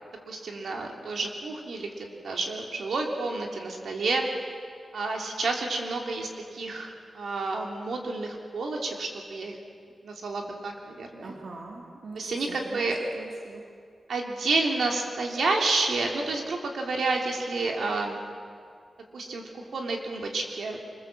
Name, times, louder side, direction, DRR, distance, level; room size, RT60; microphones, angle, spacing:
voice 1, 0.3-4.2 4.9-9.6 10.0-11.3 12.1-13.0 14.1-18.2 19.1-20.8, right 3 dB, 75° right, 1 dB, 3.0 m, -30 dB
voice 2, 11.2-13.6, right 3 dB, 60° right, 0 dB, 2.5 m, -43 dB
25.5 x 21.5 x 7.5 m, 2.2 s
wide cardioid pair, 175°, 0 cm